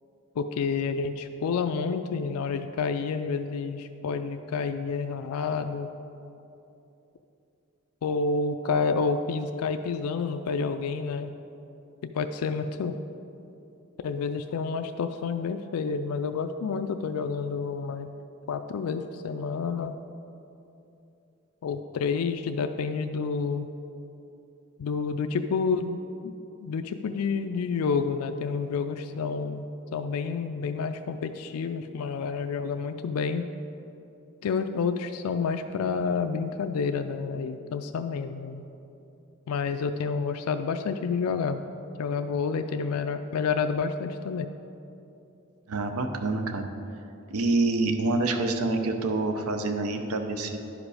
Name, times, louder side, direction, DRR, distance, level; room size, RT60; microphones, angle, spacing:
voice 1, 0.4-5.9 8.0-11.3 12.1-12.9 14.0-18.1 18.5-20.0 21.6-23.7 24.8-26.3 26.6-29.6 29.9-33.4 34.4-38.6 39.5-41.6 42.0-44.5, left 5 dB, 85° left, 8 dB, 0.3 m, -29 dB
voice 2, 45.7-46.7 47.3-50.6, right 2 dB, 85° right, 5 dB, 0.7 m, -27 dB
11.0 x 5.1 x 4.9 m, 2.8 s
head